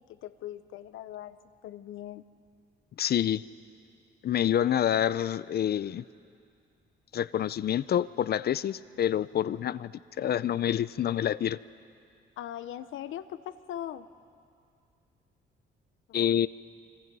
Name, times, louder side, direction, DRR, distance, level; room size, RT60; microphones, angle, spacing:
voice 1, 0.0-1.4 1.6-2.2 12.4-14.1, left 11 dB, 80° left, 12 dB, 0.9 m, -40 dB
voice 2, 3.0-3.4 4.2-6.0 7.1-9.9 10.2-11.6 16.1-16.5, left 10 dB, 55° left, 17 dB, 0.5 m, -27 dB
26.5 x 24.5 x 5.5 m, 2.4 s
cardioid pair, 90°, 20 cm